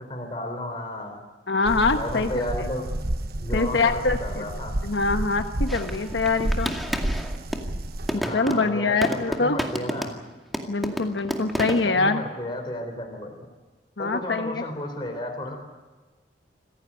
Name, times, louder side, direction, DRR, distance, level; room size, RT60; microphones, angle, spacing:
voice 1, 0.1-1.2 1.9-2.9 3.4-4.7 8.1-10.2 11.9-13.3 14.0-15.6, left 1 dB, 25° left, 2 dB, 4.1 m, -33 dB
voice 2, 1.5-2.3 2.6-2.7 3.5-4.4 4.8-6.7 8.1-9.6 10.7-12.2 14.0-14.6, left 3 dB, 85° left, 7 dB, 1.2 m, -24 dB
sound 1, 1.7-8.2, right 1 dB, 60° right, 1.2 m, -30 dB
sound 2, 5.7-7.7 8.1-10.3 10.5-11.9, equal, ahead, 2.2 m, -30 dB
27.0 x 15.5 x 8.9 m, 1.3 s
head